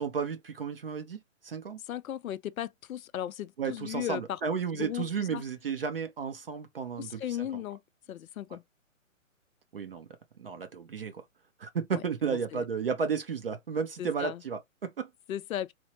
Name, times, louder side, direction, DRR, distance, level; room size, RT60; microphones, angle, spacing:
voice 1, 0.0-1.8 3.6-7.6 8.5-8.6 9.7-10.1 10.4-11.2 11.6-15.1, right 6 dB, 45° right, 0.6 m, -33 dB
voice 2, 1.9-4.4 4.8-5.0 5.3-5.4 7.0-7.8 8.1-8.6 11.9-12.0 12.3-12.6 14.0-14.4 15.3-15.7, left 11 dB, 85° left, 0.5 m, -36 dB
4.3 x 2.1 x 2.9 m
hypercardioid pair, 170°, 40 cm